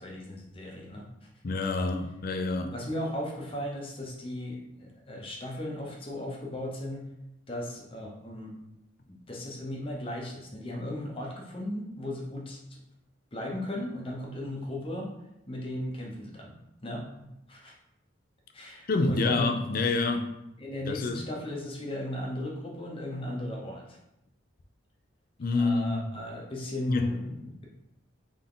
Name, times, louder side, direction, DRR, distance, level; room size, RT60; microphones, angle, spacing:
voice 1, 0.0-1.3 2.7-7.0 7.5-8.6 9.1-12.8 13.3-15.1 15.5-16.6 16.8-17.7 18.5-19.5 20.6-24.0 25.5-27.7, left 1 dB, 25° left, 0.8 m, -36 dB
voice 2, 1.4-2.7 18.9-20.3 20.9-21.2 25.4-26.0 26.9-27.1, left 3 dB, 45° left, 0.4 m, -27 dB
3.8 x 3.6 x 3.8 m
head